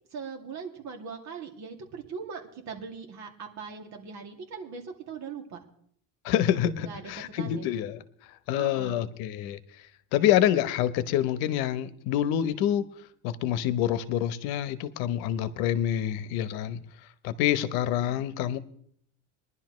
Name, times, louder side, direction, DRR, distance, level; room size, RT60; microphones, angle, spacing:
voice 1, 0.1-5.6 6.8-7.1 7.4-7.7 8.5-9.0 17.9-18.2, right 5 dB, 50° right, 2 dB, 2.4 m, -40 dB
voice 2, 6.2-8.0 8.5-9.6 10.1-12.9 13.2-16.8 17.2-18.6, left 11 dB, 80° left, 14 dB, 0.9 m, -27 dB
22.0 x 11.0 x 3.1 m, 0.65 s
cardioid pair, 150°, 37 cm